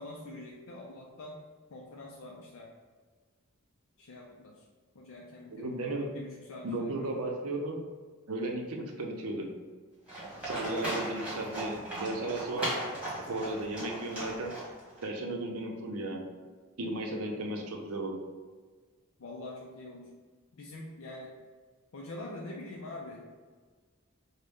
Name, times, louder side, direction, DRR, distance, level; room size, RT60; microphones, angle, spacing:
voice 1, 0.0-1.4 1.7-2.7 4.0-4.7 4.9-5.8 6.1-7.1 17.1-17.4 19.2-20.1 20.5-21.4 21.9-23.3, left 2 dB, 65° left, -2 dB, 0.4 m, -45 dB
voice 2, 5.5-6.1 6.6-7.8 8.3-9.5 10.4-12.7 13.3-14.5 15.0-16.3 16.8-18.2, right 2 dB, 85° right, 1 dB, 0.6 m, -35 dB
Livestock farm animals working animals, 10.1-15.0, right 1 dB, 5° right, 1.3 m, -37 dB
5.1 x 2.1 x 3.4 m, 1.5 s
head